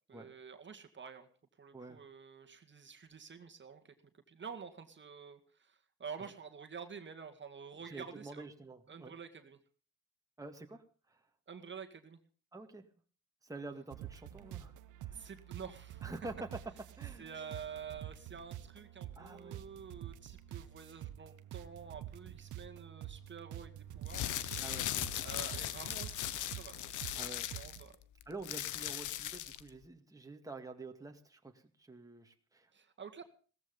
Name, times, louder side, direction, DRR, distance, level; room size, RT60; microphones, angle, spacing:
voice 1, 0.1-1.3 1.6-3.9 4.3-8.5 8.9-9.6 11.5-12.2 15.1-16.1 17.2-24.2 25.2-26.8 27.1-28.0 32.7-33.2, right 6 dB, 40° right, 6 dB, 2.0 m, -49 dB
voice 2, 7.9-9.1 10.4-11.2 12.5-12.8 13.4-15.2 16.0-16.5 17.0-17.3 19.2-19.6 24.6-25.1 27.2-27.5 28.3-32.7, right 3 dB, 10° right, 4 dB, 2.0 m, -48 dB
sound 1, 13.9-27.8, right 12 dB, 80° right, 1.2 m, -48 dB
sound 2, 24.0-29.7, left 12 dB, 80° left, 1.0 m, -39 dB
17.0 x 14.0 x 5.4 m, 0.39 s
cardioid pair, 90°, 30 cm